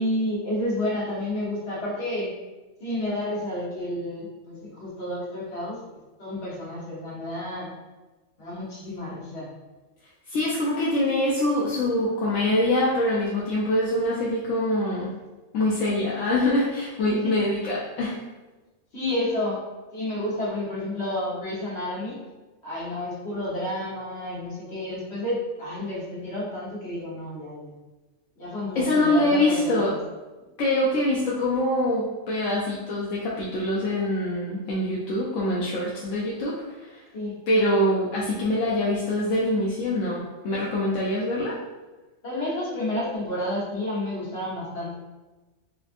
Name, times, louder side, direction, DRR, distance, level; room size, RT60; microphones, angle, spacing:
voice 1, 0.0-2.3 2.8-5.8 6.2-7.7 8.4-9.5 17.1-17.4 18.9-19.6 19.9-22.2 22.6-27.8 28.4-30.0 37.1-37.4 42.2-44.9, left 1 dB, 60° left, -8 dB, 1.5 m, -30 dB
voice 2, 10.3-15.1 15.5-18.2 28.7-29.9 30.6-37.0 37.5-41.6, left 1 dB, 80° left, -6 dB, 1.0 m, -24 dB
4.2 x 2.4 x 2.6 m, 1.2 s
omnidirectional pair, 1.3 m